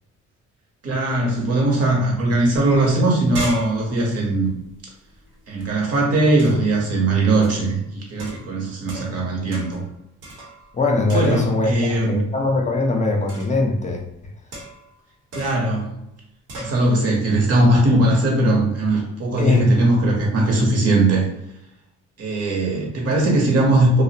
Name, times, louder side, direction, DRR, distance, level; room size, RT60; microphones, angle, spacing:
voice 1, 0.8-4.5 5.5-9.8 11.0-12.2 15.3-15.9 16.6-21.2 22.2-24.0, right 2 dB, 55° right, -1 dB, 0.9 m, -19 dB
raw tincan, 2.6-2.7 2.9-5.7 6.4-6.8 7.4-7.7 8.2-9.2 9.5-9.9 10.2-10.8 11.1-11.7 13.3-13.6 14.5-14.9 15.3-15.7 16.5-16.8, right 1 dB, 85° right, 0.9 m, -36 dB
voice 2, 10.7-11.7 12.1-14.0 19.4-19.7, left 2 dB, 25° left, 2 dB, 0.5 m, -21 dB
2.5 x 2.1 x 2.7 m, 0.84 s
cardioid pair, 90°, 30 cm